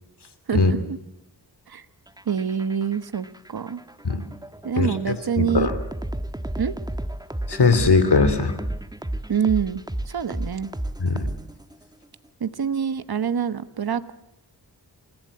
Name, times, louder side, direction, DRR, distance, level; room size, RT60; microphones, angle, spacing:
voice 1, 0.5-1.0 1.7-1.8 2.3-3.8 4.6-5.7 6.6-6.7 9.3-10.7 12.4-14.1, right 7 dB, 60° right, 12 dB, 1.2 m, -26 dB
sound 1, 2.1-11.8, right 1 dB, 10° right, 1.4 m, -32 dB
voice 2, 5.4-5.7 7.5-8.6 11.0-11.3, left 4 dB, 70° left, 12 dB, 2.9 m, -19 dB
28.0 x 16.0 x 8.5 m, 0.86 s
wide cardioid pair, 65°, 41 cm